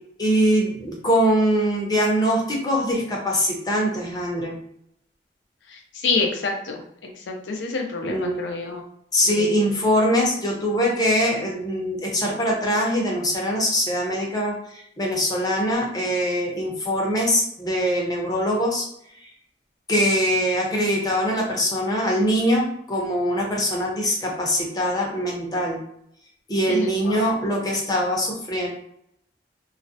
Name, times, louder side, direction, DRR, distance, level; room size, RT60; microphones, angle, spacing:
voice 1, 0.2-4.5 8.0-8.5 9.1-18.8 19.2-19.3 19.9-25.8 26.5-28.7, equal, 20° left, -2 dB, 0.6 m, -23 dB
voice 2, 5.7-6.8 7.3-8.8 9.2-9.6 26.7-27.2, left 4 dB, 85° left, 2 dB, 0.5 m, -27 dB
2.3 x 2.0 x 2.6 m, 0.70 s
head